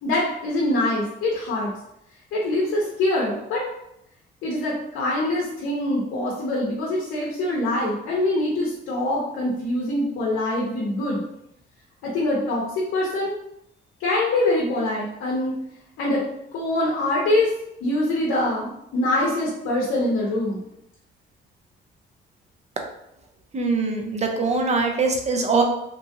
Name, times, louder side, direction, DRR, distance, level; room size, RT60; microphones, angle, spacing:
voice 1, 0.0-1.7 2.3-3.6 4.4-11.2 12.0-13.3 14.0-15.5 16.0-16.2 16.5-17.5 17.8-20.6, left 1 dB, 85° left, -4 dB, 0.7 m, -24 dB
voice 2, 23.5-25.6, right 4 dB, 35° right, 3 dB, 0.6 m, -22 dB
2.9 x 2.4 x 2.6 m, 0.80 s
cardioid pair, 90°, 20 cm